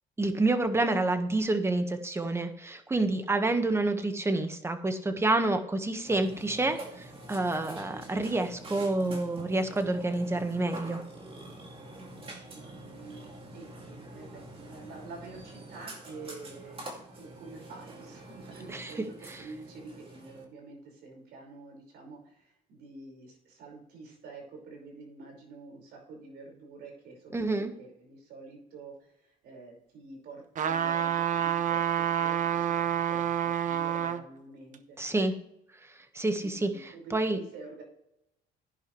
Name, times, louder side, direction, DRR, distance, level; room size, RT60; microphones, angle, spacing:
voice 1, 0.2-11.0 18.7-18.9 27.3-27.7 35.0-35.3 36.1-36.7 37.1-37.4, right 2 dB, 15° right, 7 dB, 1.5 m, -28 dB
Burping eructation, 6.0-20.5, right 1 dB, 35° right, 2.6 m, -46 dB
voice 2, 12.5-35.0 36.4-37.8, right 3 dB, 75° right, 1 dB, 5.4 m, -48 dB
sound 1, 30.6-34.2 34.7-34.8, right 9 dB, 50° right, 0.9 m, -28 dB
14.0 x 10.5 x 3.3 m, 0.79 s
cardioid pair, 110°, 17 cm